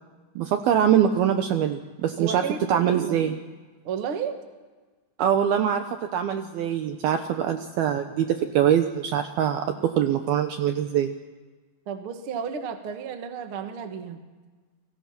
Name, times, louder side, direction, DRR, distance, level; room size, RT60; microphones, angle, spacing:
voice 1, 0.4-2.4 2.7-3.4 5.2-5.9 6.1-11.1, right 9 dB, 75° right, 7 dB, 2.3 m, -23 dB
voice 2, 2.2-3.2 3.8-4.4 11.8-14.2, right 6 dB, 60° right, 6 dB, 1.4 m, -32 dB
29.5 x 23.5 x 6.0 m, 1.3 s
omnidirectional pair, 5.5 m